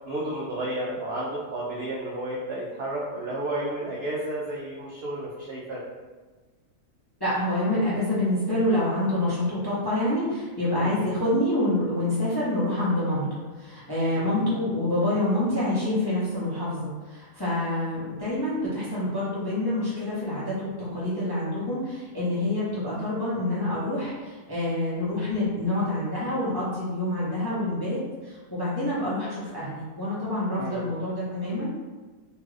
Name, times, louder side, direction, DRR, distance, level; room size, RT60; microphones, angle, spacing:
voice 1, 0.0-5.8 10.7-11.0 14.1-14.7 30.6-30.9, right 1 dB, 75° right, -6 dB, 0.5 m, -32 dB
voice 2, 7.2-13.2 13.6-31.7, left 1 dB, 30° left, -10 dB, 0.4 m, -27 dB
2.9 x 2.4 x 3.1 m, 1.3 s
omnidirectional pair, 1.6 m